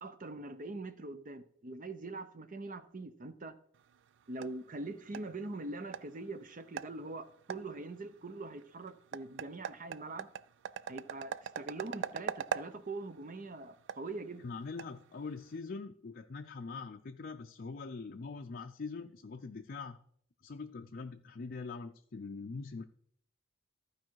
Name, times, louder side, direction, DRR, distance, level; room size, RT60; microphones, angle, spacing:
voice 1, 0.0-3.6 4.3-10.3 10.9-14.4, right 2 dB, 40° right, 0.7 m, -43 dB
sound 1, 3.7-15.6, right 8 dB, 60° right, 0.3 m, -44 dB
voice 2, 14.4-20.0 20.4-22.8, left 4 dB, 45° left, 0.5 m, -43 dB
14.0 x 4.8 x 4.7 m
head